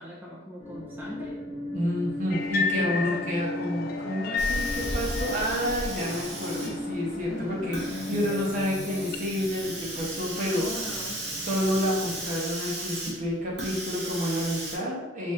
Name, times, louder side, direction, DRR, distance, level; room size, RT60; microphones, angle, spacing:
voice 1, 0.0-1.4 2.7-3.3 7.3-7.9 10.5-11.2, left 1 dB, 10° right, -6 dB, 0.5 m, -39 dB
sound 1, 0.6-12.2, left 1 dB, 30° left, 0.9 m, -38 dB
voice 2, 1.7-7.8 8.1-10.7 11.4-15.3, equal, 40° right, -3 dB, 0.9 m, -29 dB
sound 2, 2.3-9.2, left 4 dB, 50° left, 0.3 m, -34 dB
Hiss, 4.4-14.8, right 1 dB, 65° right, 1.1 m, -35 dB
3.5 x 2.6 x 4.2 m, 1.1 s
head